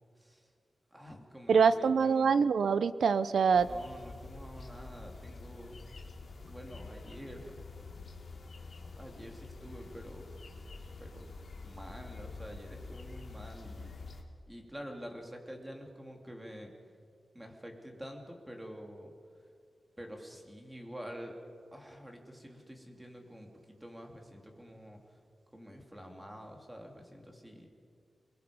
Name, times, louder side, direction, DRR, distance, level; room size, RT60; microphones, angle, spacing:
voice 1, 0.2-0.5 0.9-2.4 3.5-5.8 6.4-7.6 9.0-10.3 11.0-11.3 11.6-13.9 14.5-16.7 17.3-19.1 19.4-19.5 20.0-21.4 21.7-25.2 25.5-27.7, equal, 10° right, 1 dB, 3.5 m, -48 dB
voice 2, 1.5-3.7, right 6 dB, 85° right, 14 dB, 0.7 m, -25 dB
sound 1, 3.5-14.2, left 3 dB, 55° left, 3.1 m, -47 dB
29.0 x 21.5 x 5.5 m, 2.2 s
wide cardioid pair, 120°, 0 cm